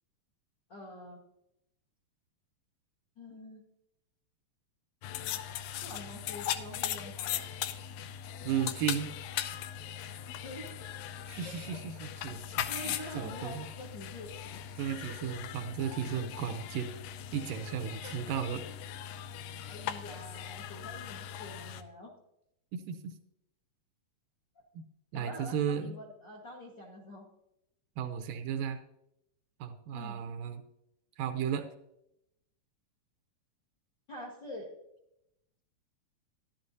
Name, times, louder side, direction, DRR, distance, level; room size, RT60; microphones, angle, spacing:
voice 1, 0.7-1.2 3.2-3.6 5.8-7.5 10.4-10.7 11.4-11.8 12.2-14.3 15.1-15.2 18.0-18.3 19.7-22.1 25.1-27.2 29.9-30.2 34.1-34.7, left 1 dB, 60° left, -2 dB, 1.2 m, -46 dB
sound 1, 5.0-21.8, left 10 dB, 85° left, 2.4 m, -39 dB
voice 2, 8.4-9.1 11.3-13.7 14.8-16.9 17.3-18.6 22.7-23.2 24.8-24.9 25.1-26.0 28.0-28.8 29.6-30.6 31.2-31.7, right 8 dB, 80° right, 7 dB, 2.1 m, -35 dB
13.0 x 11.5 x 2.7 m, 0.82 s
omnidirectional pair, 4.1 m